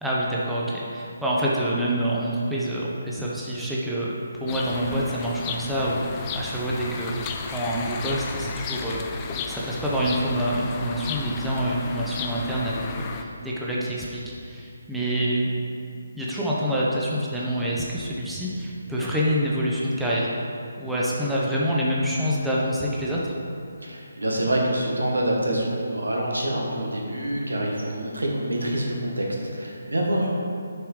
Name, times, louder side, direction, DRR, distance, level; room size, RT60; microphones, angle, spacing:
voice 1, 0.0-4.1 4.4-9.2 9.5-15.5 16.1-20.3 20.8-23.3, equal, 5° right, -7 dB, 0.9 m, -26 dB
sound 1, 4.5-13.2, left 5 dB, 20° left, 0.4 m, -34 dB
voice 2, 23.8-29.3 29.5-30.3, right 1 dB, 85° right, -1 dB, 1.5 m, -26 dB
6.9 x 4.8 x 4.9 m, 2.4 s
figure-of-eight pair, 150°, 0 cm